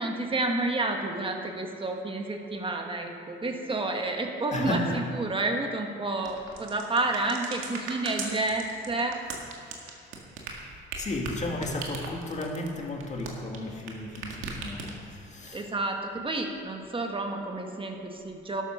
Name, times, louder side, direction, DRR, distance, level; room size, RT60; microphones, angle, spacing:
voice 1, 0.0-9.2 15.5-18.6, right 2 dB, 25° right, 3 dB, 1.7 m, -30 dB
voice 2, 4.5-5.1 10.7-15.7, left 1 dB, 35° left, 1 dB, 2.2 m, -34 dB
sound 1, 6.2-13.9 14.2-15.2, right 4 dB, 85° right, 2.0 m, -38 dB
12.0 x 9.4 x 6.3 m, 2.6 s
cardioid pair, 90°, 20 cm